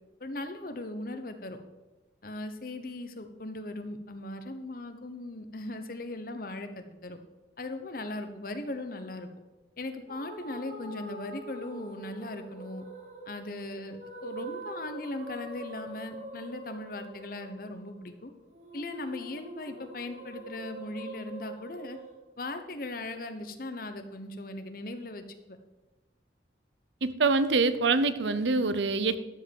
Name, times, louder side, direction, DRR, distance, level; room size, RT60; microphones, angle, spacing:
voice 1, 0.2-1.6 2.2-7.2 7.6-9.3 9.8-12.8 13.2-18.3 18.7-22.0 22.4-25.6, left 2 dB, 50° left, 8 dB, 1.0 m, -38 dB
sound 1, 10.1-22.2, right 2 dB, 40° right, 1.9 m, -44 dB
voice 2, 27.0-29.2, right 3 dB, 80° right, 13 dB, 0.7 m, -25 dB
12.5 x 5.3 x 7.1 m, 1.1 s
head